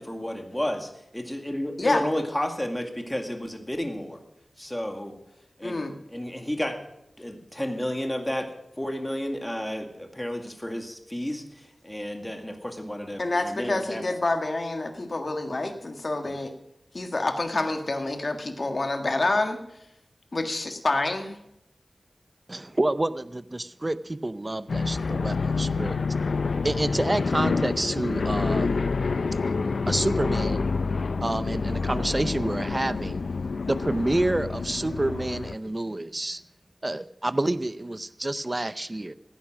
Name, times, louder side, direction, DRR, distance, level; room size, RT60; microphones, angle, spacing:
voice 1, 0.0-4.2 4.6-5.1 5.6-5.8 6.1-6.8 7.2-8.5 8.8-14.0 16.3-16.4, equal, 10° left, 4 dB, 2.1 m, -32 dB
voice 2, 5.6-5.9 13.2-16.5 16.9-19.6 20.3-21.4, left 2 dB, 50° left, 6 dB, 1.6 m, -27 dB
voice 3, 22.5-26.0 26.6-28.7 29.9-30.7 31.2-33.2 33.7-36.4 36.8-39.1, right 1 dB, 30° right, 14 dB, 0.6 m, -28 dB
sound 1, 24.7-35.6, left 4 dB, 85° left, 0.5 m, -27 dB
16.0 x 9.7 x 6.2 m, 0.81 s
wide cardioid pair, 75°, 0 cm